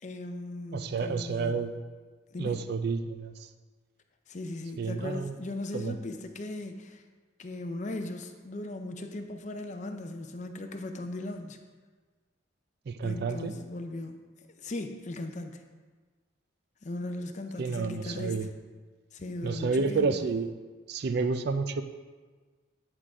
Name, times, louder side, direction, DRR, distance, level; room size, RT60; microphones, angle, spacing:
voice 1, 0.0-1.6 2.3-2.6 4.3-7.0 7.4-11.6 13.0-14.2 14.6-15.6 16.8-18.5 19.1-20.3, left 2 dB, 35° left, 6 dB, 0.5 m, -38 dB
voice 2, 0.7-1.7 2.4-3.3 4.8-5.3 5.7-5.9 12.9-13.5 17.6-18.5 19.4-20.5 20.9-21.8, right 4 dB, 50° right, 9 dB, 0.4 m, -30 dB
9.8 x 3.8 x 4.8 m, 1.4 s
head